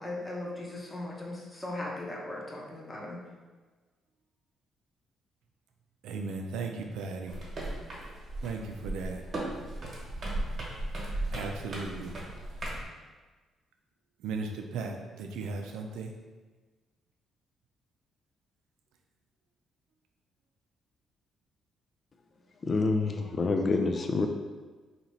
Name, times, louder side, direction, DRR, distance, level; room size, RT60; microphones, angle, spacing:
voice 1, 0.0-3.2, left 1 dB, 20° left, -3 dB, 0.9 m, -38 dB
voice 2, 6.0-7.4 8.4-9.2 11.3-12.2 14.2-16.1, right 4 dB, 90° right, 3 dB, 0.4 m, -36 dB
sound 1, 7.3-12.8, right 1 dB, 45° right, 1.2 m, -36 dB
voice 3, 22.6-24.3, left 3 dB, 40° left, 4 dB, 0.3 m, -27 dB
2.9 x 2.7 x 4.4 m, 1.3 s
cardioid pair, 90°, 0 cm